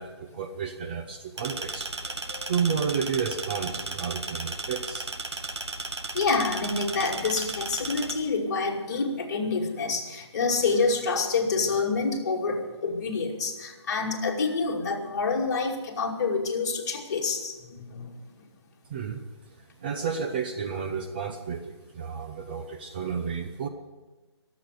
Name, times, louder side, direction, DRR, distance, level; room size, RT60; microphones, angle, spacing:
voice 1, 0.0-1.9 2.5-5.1 18.9-19.2 19.8-23.7, right 6 dB, 20° right, 5 dB, 0.6 m, -31 dB
sound 1, 1.4-8.1, right 3 dB, 75° right, 2.0 m, -35 dB
voice 2, 6.1-18.1, left 4 dB, 40° left, 0 dB, 2.5 m, -27 dB
22.5 x 8.1 x 6.7 m, 1.2 s
hypercardioid pair, 165°, 14 cm